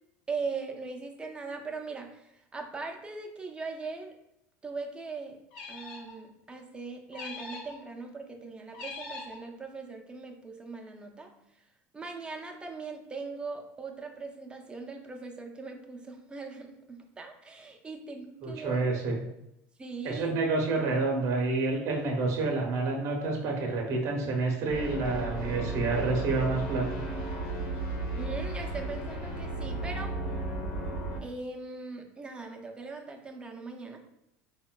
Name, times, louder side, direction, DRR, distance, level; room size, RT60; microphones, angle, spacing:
voice 1, 0.3-4.1 4.6-5.4 5.7-11.3 11.9-18.8 19.8-20.3 28.1-30.2 31.2-34.0, right 4 dB, 15° right, 3 dB, 0.4 m, -40 dB
sound 1, 5.5-6.2 7.1-7.8 8.7-9.4, left 3 dB, 75° left, 0.7 m, -42 dB
voice 2, 18.4-19.2 20.0-27.0, right 3 dB, 50° right, 1 dB, 0.7 m, -28 dB
sound 2, 24.7-31.2, right 2 dB, 90° left, 1.0 m, -34 dB
3.6 x 2.1 x 2.2 m, 0.82 s
supercardioid pair, 105°, 7 cm